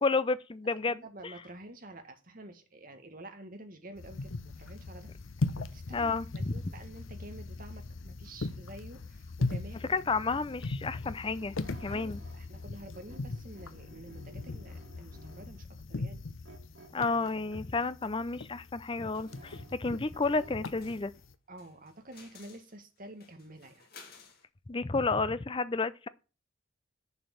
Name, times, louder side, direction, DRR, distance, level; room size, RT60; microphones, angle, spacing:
voice 1, 0.0-1.3 5.9-6.5 9.9-12.2 16.9-21.1 24.7-26.1, left 3 dB, 25° left, 0.5 m, -31 dB
voice 2, 0.8-5.1 5.5-9.8 11.9-16.2 21.5-23.9, right 1 dB, 45° right, 1.6 m, -49 dB
sound 1, 4.0-21.3, left 3 dB, 75° left, 0.7 m, -39 dB
sound 2, 9.8-12.7 12.9-15.6 16.4-18.0 18.5-21.0, right 2 dB, 60° right, 2.3 m, -56 dB
sound 3, 19.1-19.7 20.2-20.4 20.8-24.4, left 5 dB, 50° left, 2.1 m, -56 dB
8.0 x 7.1 x 6.4 m
head